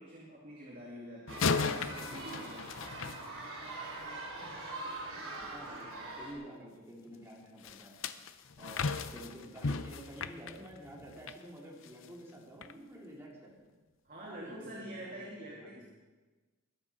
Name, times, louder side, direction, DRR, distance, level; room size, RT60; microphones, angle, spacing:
voice 1, 0.0-2.8 5.4-5.5 8.8-9.0 14.0-15.8, right 1 dB, 40° right, -4 dB, 2.6 m, -47 dB
sound 1, 1.3-3.9 7.6-11.4 11.8-12.1 12.6-12.7, left 4 dB, 60° left, 0.7 m, -36 dB
sound 2, 1.3-6.3, right 2 dB, 75° right, 4.5 m, -43 dB
voice 2, 5.5-8.1 8.6-13.7 14.2-15.8, right 1 dB, 10° right, -3 dB, 3.3 m, -50 dB
21.0 x 9.0 x 5.6 m, 1.3 s
head